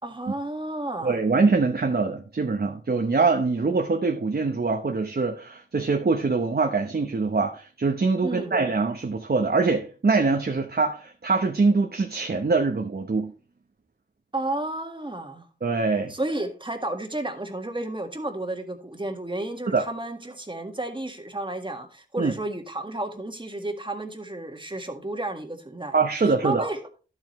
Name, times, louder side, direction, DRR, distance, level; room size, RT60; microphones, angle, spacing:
voice 1, 0.0-1.2 8.2-8.6 14.3-15.5 16.1-25.9 26.4-26.8, right 2 dB, 25° right, 1.8 m, -32 dB
voice 2, 1.0-13.3 15.6-16.1 19.7-19.8 22.2-22.3 25.9-26.6, right 4 dB, 55° right, 1.1 m, -23 dB
11.5 x 7.7 x 3.2 m
wide cardioid pair, 55°, 19 cm